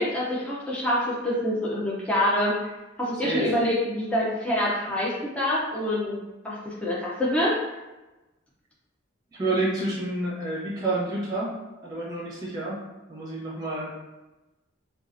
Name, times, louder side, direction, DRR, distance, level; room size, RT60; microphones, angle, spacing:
voice 1, 0.0-2.7 3.0-7.6, left 1 dB, 5° left, -8 dB, 0.5 m, -26 dB
voice 2, 3.2-3.6 9.3-11.5 11.8-12.8 13.1-13.9, right 2 dB, 20° right, -5 dB, 0.8 m, -29 dB
4.5 x 2.4 x 2.5 m, 1.1 s
head